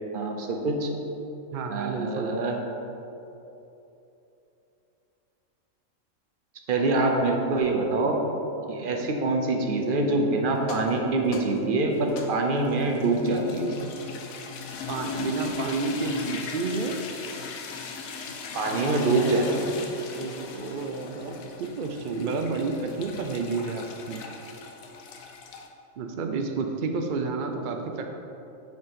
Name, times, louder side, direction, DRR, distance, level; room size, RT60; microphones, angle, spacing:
voice 1, 0.1-0.9 1.7-2.5 6.7-8.2 8.7-13.7 18.5-19.7, right 2 dB, 50° right, 2 dB, 0.8 m, -25 dB
voice 2, 1.5-2.3 14.9-17.0 20.2-24.2 26.0-28.1, right 4 dB, 85° right, 4 dB, 0.4 m, -30 dB
sound 1, 10.6-25.7, left 4 dB, 85° left, 1.1 m, -38 dB
6.3 x 4.6 x 5.1 m, 2.9 s
omnidirectional pair, 1.4 m